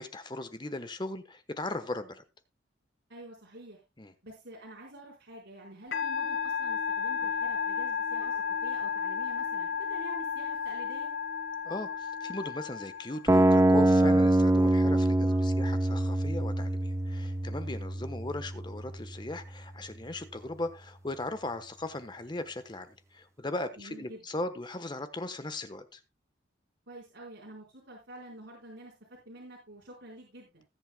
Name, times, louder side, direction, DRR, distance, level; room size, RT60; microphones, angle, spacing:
voice 1, 0.0-2.2 4.0-4.1 11.6-26.0, left 2 dB, 25° left, 1.1 m, -38 dB
voice 2, 3.1-3.8 4.2-11.1 15.3-15.5 23.8-24.2 26.9-30.6, right 1 dB, 80° right, 4.6 m, -48 dB
Musical instrument, 5.9-13.5, left 6 dB, 65° left, 6.5 m, -33 dB
sound 1, 13.3-19.3, right 1 dB, 15° right, 0.5 m, -25 dB
20.0 x 8.0 x 2.3 m
head